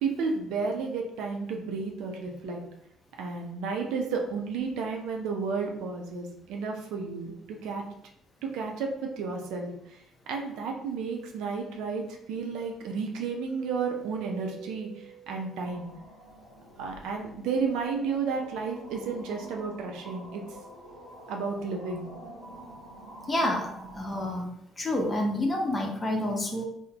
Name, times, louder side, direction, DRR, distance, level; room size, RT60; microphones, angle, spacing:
voice 1, 0.0-2.6 3.2-7.8 8.4-9.7 10.3-14.9 15.3-15.9 16.8-20.4 21.3-22.1, right 5 dB, 60° right, 2 dB, 0.4 m, -32 dB
Keyboard (musical), 13.6-16.1, right 9 dB, 30° right, 0.7 m, -46 dB
sound 1, 15.6-24.3, right 1 dB, 85° left, 0.6 m, -47 dB
voice 2, 23.3-24.5 24.8-26.6, left 1 dB, 25° left, 1 dB, 0.7 m, -28 dB
2.5 x 2.0 x 2.9 m, 0.76 s
figure-of-eight pair, 45°, 0 cm